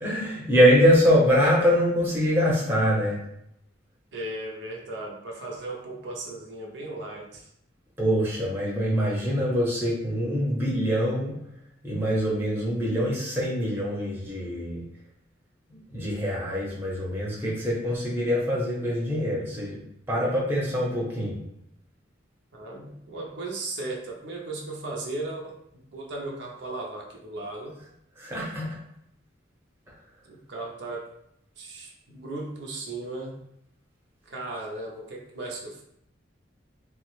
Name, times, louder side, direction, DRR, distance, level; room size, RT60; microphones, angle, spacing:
voice 1, 0.0-3.2 8.0-11.4 11.8-14.8 15.9-19.8 20.1-21.4 28.2-28.7, equal, 10° right, -5 dB, 0.7 m, -24 dB
voice 2, 4.1-7.4 22.5-25.6 25.9-27.8 30.3-31.1 31.6-33.4 34.3-35.8, right 2 dB, 70° right, -1 dB, 0.5 m, -36 dB
3.2 x 2.0 x 3.0 m, 0.77 s
head